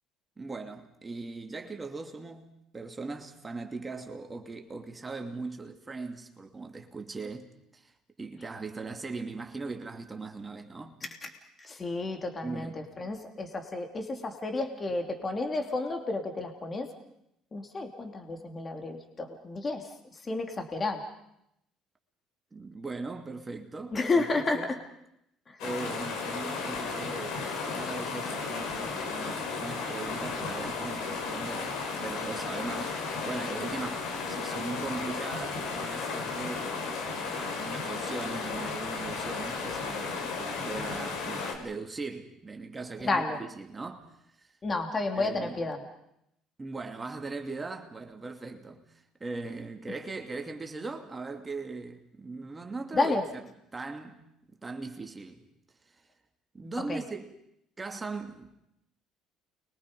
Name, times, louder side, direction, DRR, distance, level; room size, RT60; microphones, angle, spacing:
voice 1, 0.4-11.0 12.4-12.9 22.5-24.7 25.6-44.1 44.4-44.6 45.1-45.6 46.6-53.2 53.7-54.2 54.6-55.4 55.9-56.0 56.5-57.3 57.8-58.6, right 3 dB, 20° right, 2.5 m, -39 dB
voice 2, 11.6-16.9 17.5-19.9 20.2-21.0 23.9-24.6 43.0-43.4 44.6-45.8 52.9-53.2 56.9-57.0, left 3 dB, 30° left, 3.2 m, -31 dB
sound 1, 25.6-41.5, left 4 dB, 75° left, 5.2 m, -34 dB
30.0 x 23.0 x 5.4 m
supercardioid pair, 80°, 0 cm